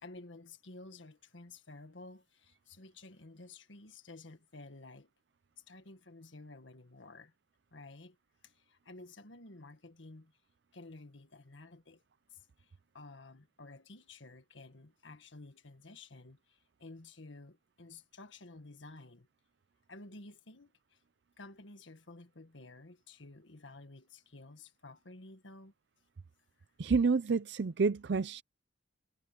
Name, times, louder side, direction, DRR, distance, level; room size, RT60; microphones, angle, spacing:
voice 1, 0.0-5.1 5.7-7.3 7.7-8.2 8.4-10.3 10.7-12.0 12.3-19.3 19.9-21.0 21.4-25.7, left 2 dB, 85° left, 1.7 m, -52 dB
voice 2, 26.8-28.4, right 4 dB, 65° right, 0.5 m, -29 dB
head